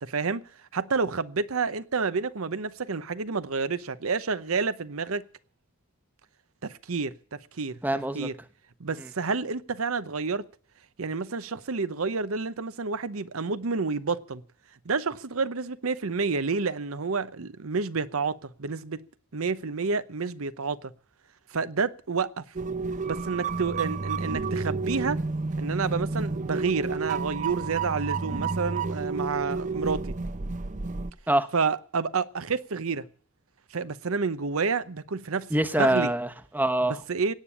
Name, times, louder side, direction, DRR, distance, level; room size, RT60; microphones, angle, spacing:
voice 1, 0.0-0.4 0.7-5.2 6.6-7.1 7.6-7.8 8.1-8.3 8.8-10.4 11.0-14.4 14.8-19.0 19.3-20.9 21.5-22.4 23.0-25.2 25.6-30.1 31.5-33.0 33.7-36.1 37.1-37.3, right 4 dB, 85° right, 0.8 m, -29 dB
voice 2, 7.8-8.3 9.0-9.1 31.3-31.5 35.5-37.0, right 1 dB, 10° right, 1.0 m, -25 dB
sound 1, 22.6-31.1, right 4 dB, 35° right, 0.6 m, -30 dB
17.0 x 8.8 x 8.5 m
head